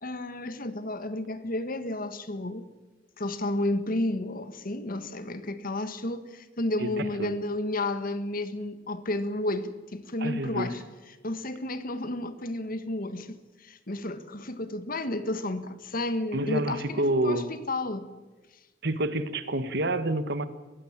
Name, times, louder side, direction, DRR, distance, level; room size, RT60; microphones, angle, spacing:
voice 1, 0.0-2.7 3.2-10.8 11.2-18.1, left 1 dB, 50° left, 1.5 m, -32 dB
voice 2, 6.8-7.3 10.2-10.7 16.3-17.5 18.8-20.4, right 1 dB, 65° right, 1.5 m, -28 dB
22.0 x 16.0 x 8.7 m
head